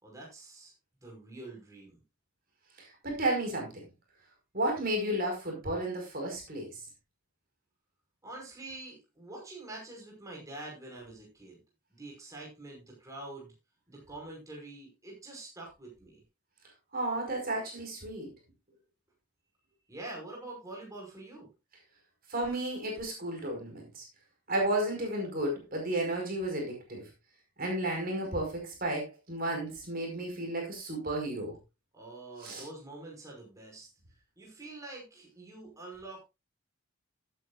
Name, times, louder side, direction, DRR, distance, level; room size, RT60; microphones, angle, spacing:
voice 1, 0.0-0.7 1.0-2.0 8.2-11.6 11.9-13.5 13.9-16.2 19.9-21.5 31.9-33.9 34.4-36.2, right 2 dB, 15° right, -1 dB, 5.4 m, -46 dB
voice 2, 2.8-3.7 4.5-6.8 16.9-18.3 22.3-24.0 24.5-27.1 27.6-31.6 32.4-32.6, right 1 dB, 40° right, 1 dB, 5.1 m, -33 dB
16.5 x 9.5 x 2.5 m, 0.26 s
head